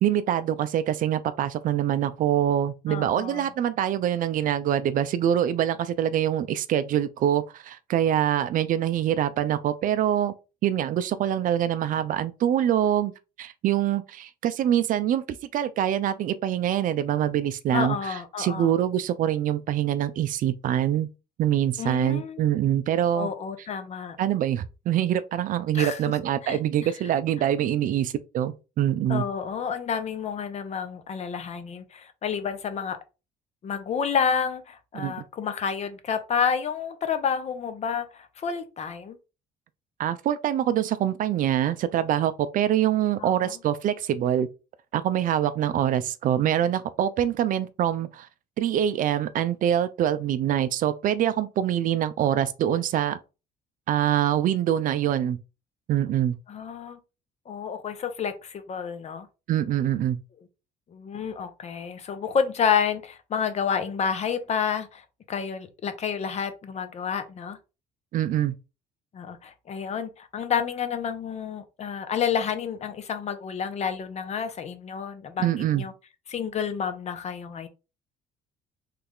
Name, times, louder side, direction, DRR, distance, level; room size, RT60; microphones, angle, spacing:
voice 1, 0.0-10.3 10.6-13.1 13.4-15.2 15.5-21.1 21.4-23.3 24.2-29.3 34.9-35.1 40.0-44.5 44.9-48.3 48.6-53.2 53.9-55.4 55.9-56.4 59.5-60.2 68.1-68.5 75.4-75.8, right 11 dB, 55° right, 0.4 m, -24 dB
voice 2, 2.9-3.5 17.7-18.7 21.8-22.5 23.1-24.2 25.7-26.0 26.4-26.9 29.1-33.0 33.6-39.2 43.2-43.5 56.5-57.0 57.5-59.3 60.9-67.6 69.1-75.9 76.3-77.7, left 7 dB, 40° left, 0.6 m, -29 dB
3.2 x 2.3 x 3.5 m
cardioid pair, 110°, 17 cm